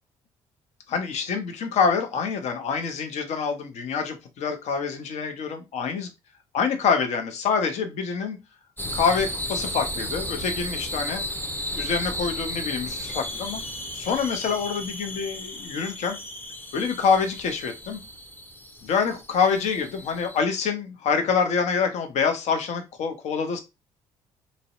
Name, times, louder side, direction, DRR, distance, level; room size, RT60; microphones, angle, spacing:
voice 1, 0.9-6.1 6.5-8.4 8.9-11.2 11.7-13.6 13.9-16.2 16.7-18.0 18.8-23.6, left 5 dB, 60° left, 6 dB, 0.6 m, -26 dB
sound 1, 8.8-20.4, equal, 15° left, 0.6 m, -34 dB
2.6 x 2.0 x 2.4 m, 0.24 s
hypercardioid pair, 55°, 13 cm